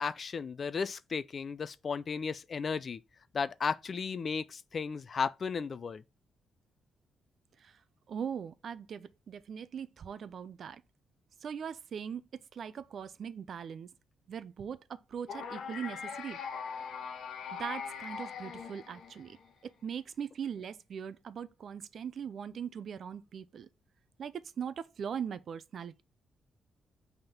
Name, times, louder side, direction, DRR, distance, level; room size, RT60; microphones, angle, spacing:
voice 1, 0.0-3.0 3.3-6.0, left 5 dB, 35° left, 0.4 m, -34 dB
voice 2, 8.1-10.8 11.4-13.9 14.3-16.4 17.6-19.4 19.6-23.7 24.2-26.0, right 7 dB, 50° right, 0.4 m, -40 dB
sound 1, 15.3-19.5, left 6 dB, 65° left, 0.9 m, -41 dB
5.7 x 3.6 x 5.5 m
wide cardioid pair, 175°, 0 cm